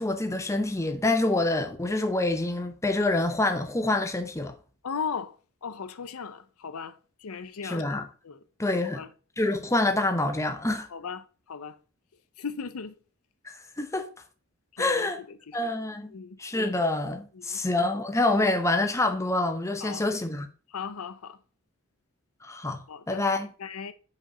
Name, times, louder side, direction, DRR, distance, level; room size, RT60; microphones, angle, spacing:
voice 1, 0.0-4.5 7.6-8.1 8.6-9.0 9.4-10.9 13.4-14.1 14.8-15.2 15.5-20.5 22.4-23.5, left 2 dB, 15° left, 0.8 m, -27 dB
voice 2, 4.8-5.4 5.6-7.9 8.2-8.4 8.9-9.1 10.9-11.8 12.4-12.9 14.8-15.6 16.1-16.4 17.3-17.6 19.8-20.0 20.7-21.4 22.9-23.2 23.6-23.9, left 6 dB, 90° left, 0.6 m, -37 dB
5.6 x 5.0 x 5.4 m
head